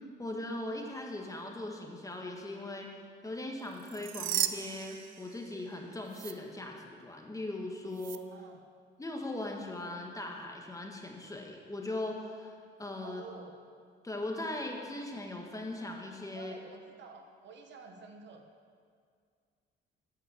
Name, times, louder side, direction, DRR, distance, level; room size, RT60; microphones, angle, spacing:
voice 1, 0.2-2.9 3.2-8.2 9.0-13.2 14.0-16.5, left 2 dB, 15° left, 1 dB, 1.5 m, -39 dB
sound 1, 3.7-5.7 6.1-6.3 8.0-8.2, right 13 dB, 85° right, 0.4 m, -36 dB
voice 2, 8.3-8.7 13.0-13.6 16.3-18.5, right 4 dB, 65° right, 4 dB, 1.1 m, -50 dB
9.7 x 5.6 x 7.3 m, 2.1 s
cardioid pair, 90°, 20 cm